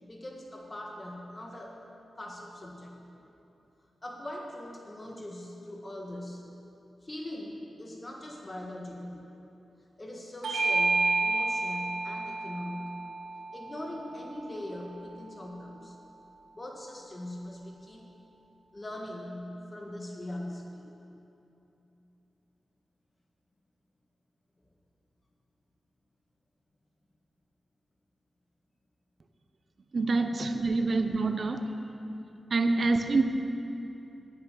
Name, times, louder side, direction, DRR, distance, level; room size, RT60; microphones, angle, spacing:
voice 1, 0.0-1.8 2.2-3.0 4.0-6.5 7.0-9.2 10.0-12.9 13.5-16.0 16.5-18.1 18.7-20.9 30.3-30.5 32.7-32.8 33.1-33.2, left 1 dB, 30° left, 0 dB, 1.6 m, -41 dB
Bell / Doorbell, 10.4-15.3, right 3 dB, 90° right, 1.6 m, -31 dB
voice 2, 29.9-31.7 32.5-33.2, right 3 dB, 60° right, 8 dB, 0.7 m, -26 dB
10.5 x 9.6 x 6.3 m, 2.9 s
cardioid pair, 55°, 0 cm